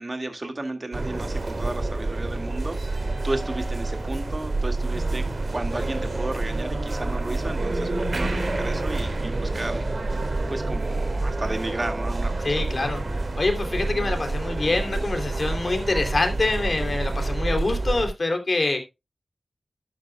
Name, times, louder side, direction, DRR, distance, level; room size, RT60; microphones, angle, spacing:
voice 1, 0.0-9.8 10.5-12.6, right 2 dB, 35° right, 7 dB, 2.0 m, -33 dB
sound 1, 0.9-18.1, right 2 dB, 55° right, 2.7 m, -28 dB
voice 2, 12.4-13.0 13.4-18.8, left 2 dB, 50° left, 5 dB, 2.9 m, -25 dB
12.0 x 10.5 x 2.3 m, 0.24 s
wide cardioid pair, 90°, 0 cm